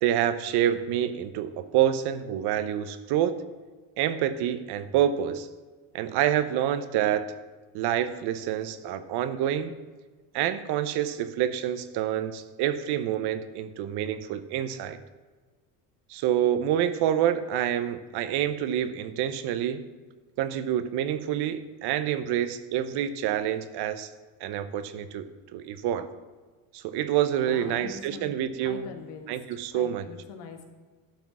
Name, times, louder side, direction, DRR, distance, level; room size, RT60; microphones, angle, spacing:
voice 1, 0.0-3.3 4.0-5.5 5.9-7.3 7.7-9.7 10.3-15.0 16.1-19.8 20.4-24.1 24.4-25.2 25.5-26.1 26.7-28.9 29.3-30.1, right 10 dB, 65° right, 12 dB, 0.9 m, -27 dB
voice 2, 27.4-29.5 29.7-30.7, left 5 dB, 75° left, 4 dB, 1.7 m, -43 dB
11.5 x 5.8 x 6.1 m, 1.4 s
supercardioid pair, 90°, 42 cm